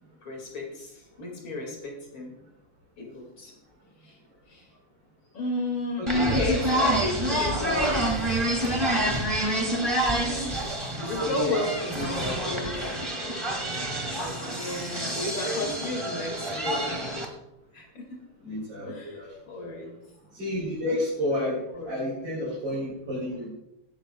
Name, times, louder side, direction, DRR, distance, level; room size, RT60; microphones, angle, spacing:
voice 1, 0.2-2.4 3.0-3.6 4.0-4.2 4.5-4.7 5.3-8.0 10.1-12.9 14.4-17.1 17.7-18.2 18.9-20.0 21.7-22.0, left 2 dB, 70° left, 0 dB, 3.2 m, -33 dB
voice 2, 6.0-6.5 10.9-11.6 12.0-12.6 15.4-15.7 18.4-19.3 20.3-21.6 21.9-23.5, left 1 dB, 60° right, -6 dB, 4.7 m, -31 dB
sound 1, 6.1-17.3, right 1 dB, 15° right, 1.9 m, -27 dB
17.5 x 13.5 x 2.3 m, 0.88 s
omnidirectional pair, 2.3 m